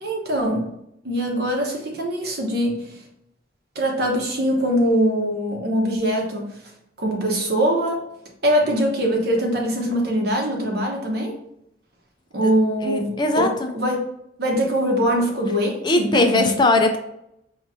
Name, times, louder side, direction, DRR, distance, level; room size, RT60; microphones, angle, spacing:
voice 1, 0.0-0.7 1.0-3.0 3.7-6.5 7.0-8.0 8.4-11.4 12.3-14.1 14.4-16.6, equal, 60° right, 0 dB, 1.0 m, -22 dB
voice 2, 12.8-13.7 15.8-17.0, left 2 dB, 25° left, 5 dB, 0.4 m, -19 dB
5.0 x 3.0 x 2.6 m, 0.79 s
head